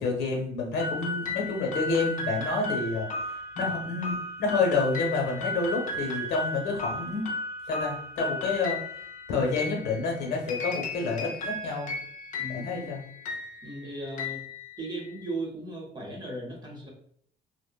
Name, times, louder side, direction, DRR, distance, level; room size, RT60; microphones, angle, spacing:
voice 1, 0.0-7.3 7.7-8.8 9.3-11.9 12.5-13.0, left 3 dB, 80° left, 0 dB, 0.9 m, -29 dB
sound 1, 0.8-15.2, left 2 dB, 50° left, 0.6 m, -35 dB
voice 2, 12.4-13.0 13.6-14.4 14.8-16.9, right 2 dB, 25° right, 0 dB, 0.7 m, -37 dB
2.8 x 2.1 x 2.2 m, 0.63 s
cardioid pair, 110°, 17 cm